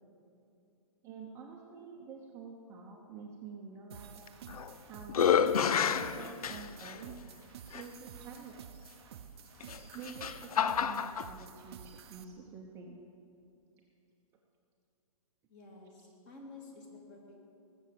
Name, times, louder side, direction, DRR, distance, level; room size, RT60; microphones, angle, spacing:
voice 1, 1.0-4.2 4.9-7.2 7.7-8.6 9.9-13.0, right 5 dB, 15° right, -2 dB, 0.8 m, -48 dB
sound 1, 3.9-12.2, right 8 dB, 45° right, 0.7 m, -51 dB
sound 2, 4.3-4.7 5.1-7.0 7.7-7.8 9.6-11.3, left 7 dB, 80° left, 0.6 m, -29 dB
voice 2, 15.5-17.4, left 3 dB, 25° left, 0 dB, 2.4 m, -51 dB
19.0 x 7.0 x 7.6 m, 2.6 s
hypercardioid pair, 160°, 19 cm